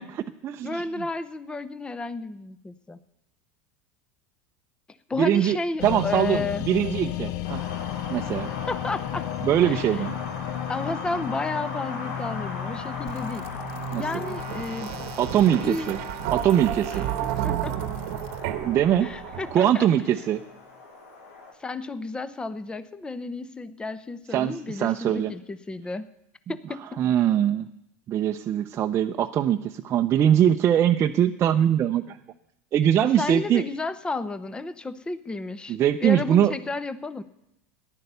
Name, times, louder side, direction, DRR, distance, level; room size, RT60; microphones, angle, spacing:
voice 1, 0.0-1.1 5.2-5.6 5.8-7.6 8.1-8.5 9.4-10.1 13.9-14.2 15.2-16.0 16.3-17.1 18.6-19.1 19.5-20.4 24.3-25.3 27.0-27.6 28.1-32.2 32.7-33.6 35.7-36.5, right 10 dB, 35° right, 5 dB, 0.6 m, -22 dB
voice 2, 0.6-3.0 5.1-6.6 8.7-9.3 9.7-9.8 10.7-13.4 14.0-14.9 15.6-15.9 17.4-17.9 19.0-19.9 21.6-26.1 26.5-27.0 33.0-35.8 36.0-37.2, left 3 dB, 10° left, 14 dB, 0.7 m, -32 dB
sound 1, 5.8-18.8 19.2-19.3, left 12 dB, 60° left, 0.7 m, -35 dB
Wind, 7.4-21.5, left 3 dB, 90° left, 3.3 m, -39 dB
sound 2, 13.1-19.8, right 12 dB, 65° right, 1.0 m, -32 dB
14.0 x 11.0 x 6.8 m, 0.82 s
supercardioid pair, 110°, 7 cm